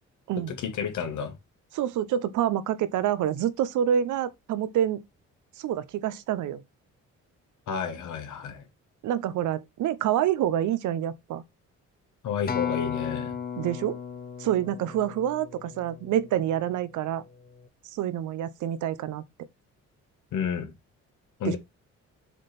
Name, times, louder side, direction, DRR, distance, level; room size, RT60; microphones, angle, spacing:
voice 1, 0.5-1.3 7.7-8.6 12.2-13.4 20.3-20.7 21.4-21.6, left 7 dB, 75° left, 1.6 m, -31 dB
voice 2, 1.7-5.0 5.6-6.6 9.0-11.4 13.6-14.0 14.4-17.2 17.9-19.2 21.4-21.6, right 10 dB, 80° right, 0.8 m, -27 dB
Acoustic guitar, 12.5-16.9 17.5-17.7, left 7 dB, 30° left, 0.9 m, -35 dB
7.4 x 3.4 x 4.1 m
cardioid pair, 90°, 30 cm